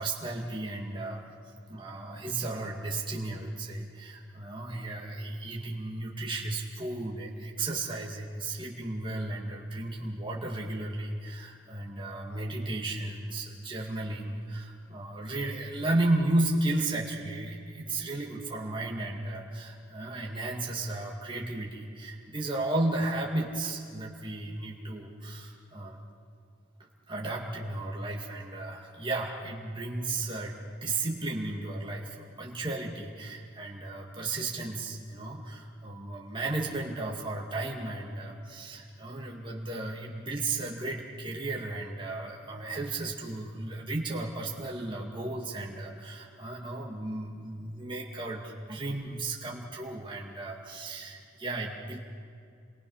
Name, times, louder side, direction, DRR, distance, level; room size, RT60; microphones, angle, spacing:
voice 1, 0.0-1.3 1.7-26.0 27.1-30.5 30.8-52.0, right 2 dB, 25° right, -2 dB, 2.3 m, -34 dB
29.0 x 22.5 x 5.7 m, 2.4 s
head